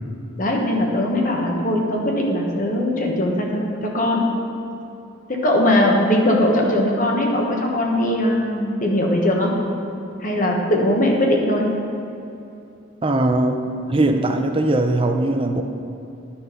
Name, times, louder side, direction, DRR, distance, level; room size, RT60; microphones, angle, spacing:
voice 1, 0.4-4.2 5.3-9.5 10.2-11.7, left 1 dB, 40° left, 0 dB, 1.2 m, -20 dB
voice 2, 13.0-13.6 13.9-15.6, right 2 dB, 25° right, 5 dB, 0.5 m, -20 dB
10.0 x 6.1 x 5.4 m, 2.7 s
head